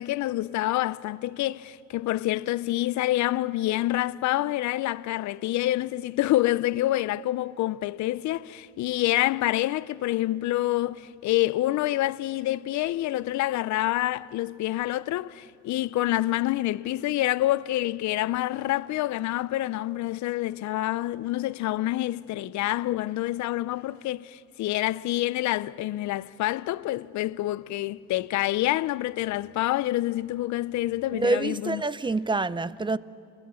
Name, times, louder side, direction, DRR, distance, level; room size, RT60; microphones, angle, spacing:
voice 1, 0.0-31.8, left 16 dB, 70° left, 0.5 m, -27 dB
voice 2, 31.1-33.0, right 3 dB, 15° right, 0.5 m, -26 dB
26.5 x 20.5 x 7.0 m
cardioid pair, 90°, 30 cm